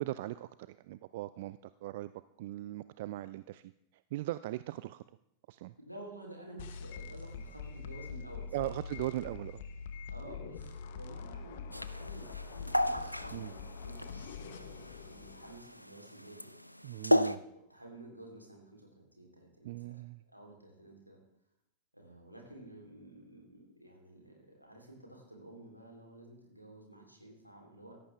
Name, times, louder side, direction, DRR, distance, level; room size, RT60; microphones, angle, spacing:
voice 1, 0.0-2.1 2.4-3.7 4.1-5.0 5.5-5.7 8.5-9.6 13.3-13.5 16.8-17.4 19.6-20.2, right 16 dB, 50° right, 15 dB, 0.4 m, -39 dB
voice 2, 5.8-8.7 10.1-16.5 17.3-20.0 20.3-21.2 21.9-27.9, right 1 dB, 90° right, 0 dB, 3.3 m, -52 dB
sound 1, 6.6-15.6, left 5 dB, 55° left, 1.0 m, -44 dB
sound 2, 11.7-17.4, equal, 90° left, 0.5 m, -33 dB
16.5 x 13.5 x 3.4 m, 0.79 s
figure-of-eight pair, 90°, 0 cm